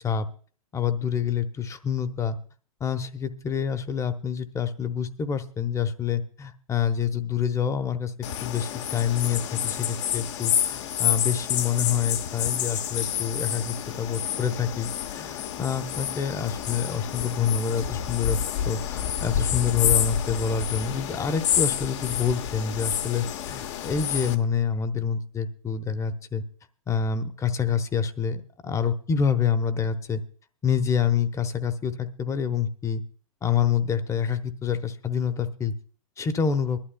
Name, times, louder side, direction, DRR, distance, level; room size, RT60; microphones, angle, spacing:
voice 1, 0.7-2.4 2.8-18.4 18.6-26.4 26.9-30.2 30.6-33.0 33.4-35.7 36.2-36.8, left 7 dB, 15° left, 10 dB, 0.9 m, -27 dB
sound 1, 8.2-24.4, left 10 dB, 60° left, 1.0 m, -29 dB
22.5 x 12.0 x 2.2 m, 0.43 s
hypercardioid pair, 110°, 18 cm